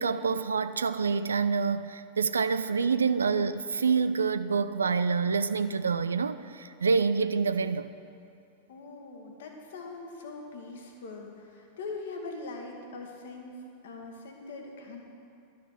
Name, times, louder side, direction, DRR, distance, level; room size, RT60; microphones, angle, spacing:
voice 1, 0.0-7.9, right 5 dB, 70° right, 12 dB, 0.3 m, -27 dB
voice 2, 8.7-13.6 13.8-15.0, left 3 dB, 60° left, 2 dB, 1.5 m, -42 dB
11.5 x 5.9 x 7.9 m, 2.6 s
figure-of-eight pair, 90°, 0 cm